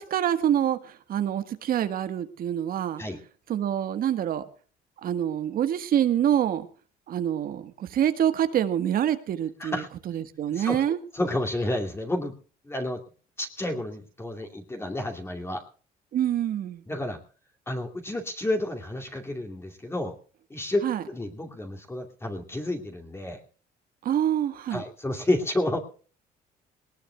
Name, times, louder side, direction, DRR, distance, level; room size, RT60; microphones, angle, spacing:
voice 1, 0.0-3.0 3.5-4.4 5.0-6.7 7.1-11.0 16.1-16.8 20.8-21.0 24.0-24.8, right 10 dB, 60° right, 11 dB, 1.4 m, -26 dB
voice 2, 11.1-12.4 12.6-13.0 13.4-15.6 16.9-17.2 17.7-20.1 20.5-23.4 24.7-25.8, left 1 dB, 15° left, 2 dB, 2.6 m, -30 dB
20.5 x 19.0 x 2.3 m, 0.39 s
cardioid pair, 110°, 17 cm